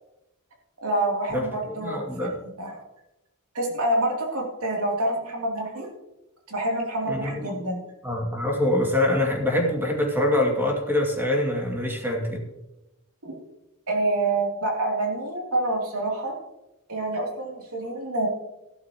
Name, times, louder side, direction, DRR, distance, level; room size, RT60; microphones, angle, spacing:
voice 1, 0.8-2.8 3.5-5.9 6.5-7.8 13.2-13.4 13.9-16.3 16.9-18.3, right 1 dB, 80° right, -1 dB, 3.2 m, -27 dB
voice 2, 1.3-2.4 7.1-7.5 8.0-12.4, left 1 dB, 10° right, 0 dB, 2.4 m, -25 dB
14.5 x 12.0 x 3.1 m, 0.95 s
head